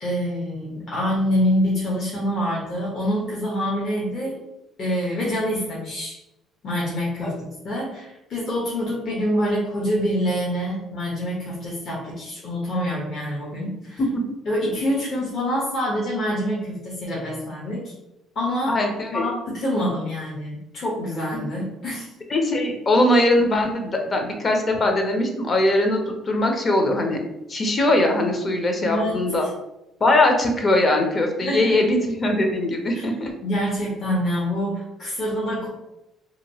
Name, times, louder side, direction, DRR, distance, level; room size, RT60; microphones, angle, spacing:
voice 1, 0.0-4.4 4.8-6.2 6.6-7.3 7.6-14.0 14.5-17.9 18.3-18.8 19.1-22.1 28.8-29.2 31.4-31.8 32.9-33.0 33.4-35.7, equal, 55° left, -5 dB, 0.9 m, -26 dB
voice 2, 18.7-19.3 21.3-21.5 22.3-27.2 27.5-29.5 30.0-33.3, left 1 dB, 35° left, 3 dB, 0.6 m, -21 dB
2.8 x 2.6 x 2.8 m, 0.90 s
cardioid pair, 105°, 0 cm